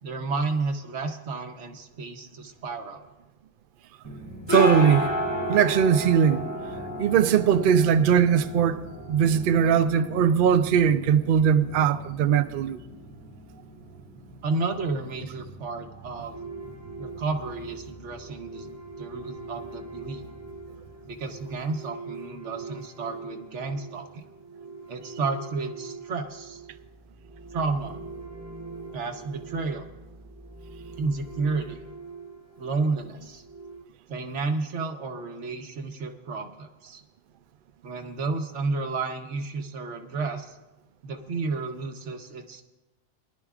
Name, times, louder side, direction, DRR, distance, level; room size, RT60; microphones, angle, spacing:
voice 1, 0.0-3.0 14.4-16.4 17.0-18.7 19.0-20.2 21.1-24.2 24.9-26.6 27.5-28.0 28.9-29.9 31.0-31.8 32.6-33.4 34.1-37.0 37.8-40.6 41.0-42.6, right 3 dB, 75° right, 1.3 m, -31 dB
sound 1, 4.1-21.5, left 1 dB, 20° left, 2.3 m, -35 dB
voice 2, 4.5-5.1 5.5-6.5 7.0-12.8, right 8 dB, 60° right, 0.6 m, -20 dB
sound 2, 16.3-33.8, right 3 dB, 20° right, 0.5 m, -43 dB
22.0 x 11.0 x 2.4 m
omnidirectional pair, 1.2 m